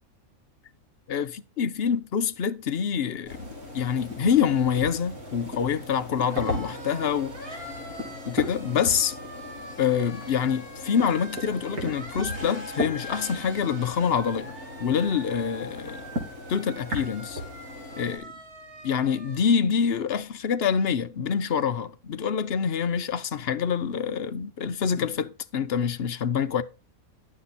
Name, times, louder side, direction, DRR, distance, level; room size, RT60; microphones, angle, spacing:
voice 1, 1.1-3.5 3.7-7.6 8.3-9.2 9.8-14.5 14.8-16.0 16.5-17.4 18.0-18.3 18.8-26.6, left 7 dB, 55° left, 0.8 m, -26 dB
sound 1, 3.0-19.4, equal, 40° right, 2.7 m, -44 dB
sound 2, 3.2-18.2, left 1 dB, 75° right, 4.1 m, -37 dB
11.0 x 7.5 x 4.1 m
omnidirectional pair, 1.5 m